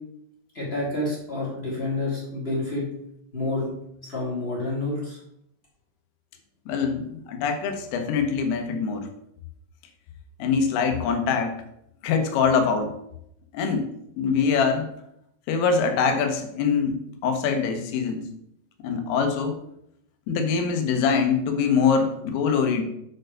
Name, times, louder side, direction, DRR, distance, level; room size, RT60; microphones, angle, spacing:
voice 1, 0.5-2.8 3.3-3.7 4.1-5.2, left 2 dB, 45° left, -4 dB, 0.7 m, -28 dB
voice 2, 6.7-9.1 10.4-11.6 12.0-13.0 13.5-13.9 14.2-14.9 15.5-17.0 17.2-18.2 18.8-19.6 20.3-22.8, left 5 dB, 80° left, 6 dB, 3.7 m, -23 dB
9.0 x 4.5 x 6.5 m, 0.76 s
omnidirectional pair, 5.9 m